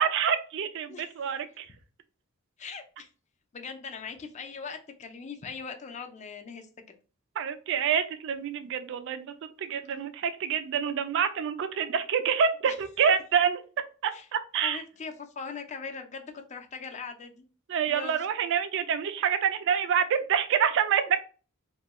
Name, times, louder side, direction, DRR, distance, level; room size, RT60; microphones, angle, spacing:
voice 1, 0.0-1.7 7.4-13.6 14.0-14.8 17.7-21.2, right 7 dB, 60° right, 9 dB, 0.3 m, -27 dB
voice 2, 2.6-3.1 3.5-6.7 9.8-10.0 12.6-12.8 14.1-14.3 14.6-17.4 17.9-18.3, left 5 dB, 35° left, 5 dB, 0.4 m, -40 dB
2.9 x 2.2 x 2.9 m, 0.36 s
head